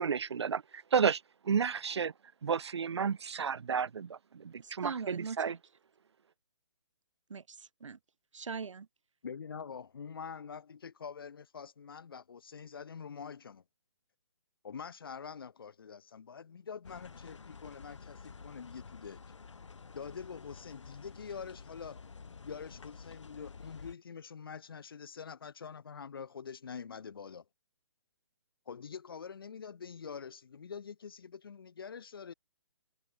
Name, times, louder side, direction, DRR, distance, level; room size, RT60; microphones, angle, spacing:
voice 1, 0.0-2.1 2.4-5.5, right 6 dB, 60° right, 0.7 m, -32 dB
voice 2, 4.6-5.6 7.3-8.0 8.3-8.9, right 5 dB, 90° right, 1.3 m, -41 dB
voice 3, 9.2-13.6 14.6-19.2 19.9-22.0 22.4-27.4 28.7-32.3, left 6 dB, 50° left, 2.2 m, -45 dB
sound 1, 16.8-23.9, left 5 dB, 75° left, 5.4 m, -50 dB
hypercardioid pair, 175°, 15 cm